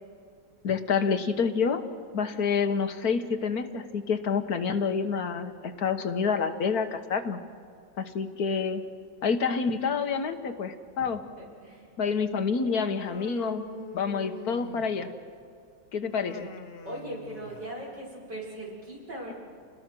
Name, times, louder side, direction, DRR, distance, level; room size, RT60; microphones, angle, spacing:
voice 1, 0.6-1.8 2.1-7.4 8.0-8.8 9.2-11.2 12.0-15.1 15.9-16.5, left 5 dB, 55° left, 7 dB, 1.5 m, -28 dB
voice 2, 11.4-12.1 16.8-19.4, right 1 dB, 65° right, -5 dB, 6.6 m, -39 dB
Human voice, 12.9-15.2 16.1-17.9, left 3 dB, 40° left, 1.1 m, -44 dB
28.5 x 20.0 x 6.2 m, 2.3 s
omnidirectional pair, 2.0 m